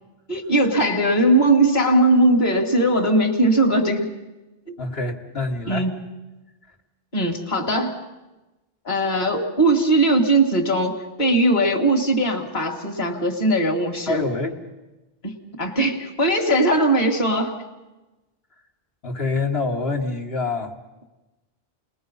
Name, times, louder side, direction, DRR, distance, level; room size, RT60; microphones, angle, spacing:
voice 1, 0.3-4.1 5.7-6.0 7.1-8.0 8.9-14.2 15.2-17.6, right 1 dB, 45° left, 2 dB, 2.1 m, -19 dB
voice 2, 4.8-5.9 14.1-14.6 19.0-20.7, left 3 dB, 70° left, -2 dB, 2.0 m, -26 dB
29.5 x 20.5 x 5.6 m, 1.1 s
omnidirectional pair, 1.1 m